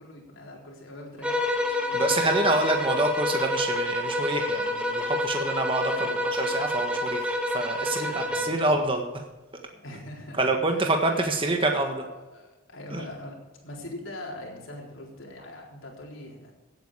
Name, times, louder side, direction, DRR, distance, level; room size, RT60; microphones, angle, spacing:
voice 1, 0.0-1.5 1.9-2.8 5.9-6.3 8.0-8.7 9.8-11.2 11.6-13.4 13.6-16.5, left 1 dB, 75° left, -1 dB, 4.0 m, -43 dB
sound 1, 1.2-8.7, left 1 dB, 5° right, 1.3 m, -28 dB
voice 2, 1.9-5.9 6.4-9.0 10.4-12.0 12.9-13.0, right 2 dB, 25° right, 3 dB, 1.5 m, -26 dB
16.5 x 9.0 x 5.0 m, 1.2 s
head